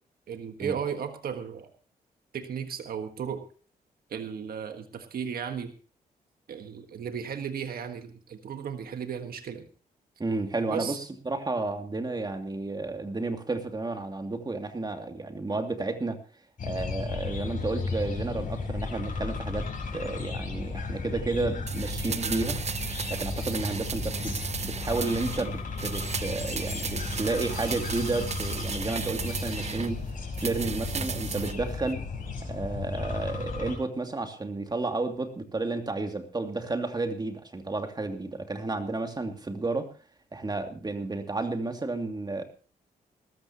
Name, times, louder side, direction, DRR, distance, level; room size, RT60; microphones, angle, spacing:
voice 1, 0.3-1.7 2.3-3.4 4.1-5.7 6.5-9.7 10.7-11.0, right 7 dB, 70° right, 7 dB, 1.6 m, -35 dB
voice 2, 10.2-16.2 16.6-22.6 23.1-24.4 24.6-30.0 30.4-32.0 32.5-39.9 40.3-42.4, right 3 dB, 25° right, 5 dB, 2.6 m, -32 dB
sound 1, 16.6-33.7, left 4 dB, 60° left, 5.9 m, -34 dB
sound 2, 21.7-25.5 25.8-29.9 30.3-31.6 31.9-32.0, right 7 dB, 45° right, 0.9 m, -35 dB
20.0 x 13.5 x 3.0 m, 0.38 s
cardioid pair, 80°, 16 cm